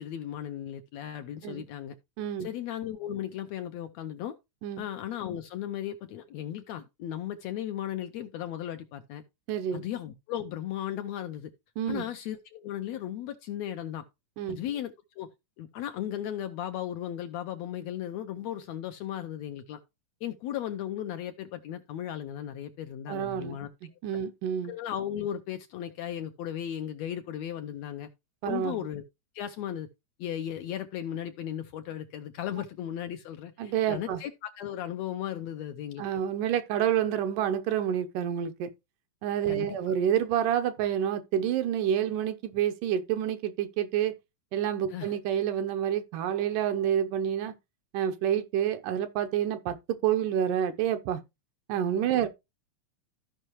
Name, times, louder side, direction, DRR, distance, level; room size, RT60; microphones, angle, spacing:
voice 1, 0.0-1.9 2.4-4.4 4.8-9.2 9.7-11.5 11.9-14.0 14.5-15.3 15.6-19.8 20.2-23.7 24.7-28.1 28.4-29.0 29.3-29.9 30.2-36.0 39.5-39.9 44.9-45.2 52.1-52.2, left 11 dB, 80° left, 1.6 m, -36 dB
voice 2, 2.2-2.5 4.6-4.8 9.5-9.9 11.8-12.1 14.4-14.6 23.1-23.6 24.0-24.7 28.4-28.8 33.6-34.2 36.0-38.7 39.2-44.2 44.5-47.5 47.9-51.2 51.7-52.3, right 10 dB, 80° right, 2.4 m, -28 dB
14.0 x 5.5 x 3.0 m
omnidirectional pair, 3.7 m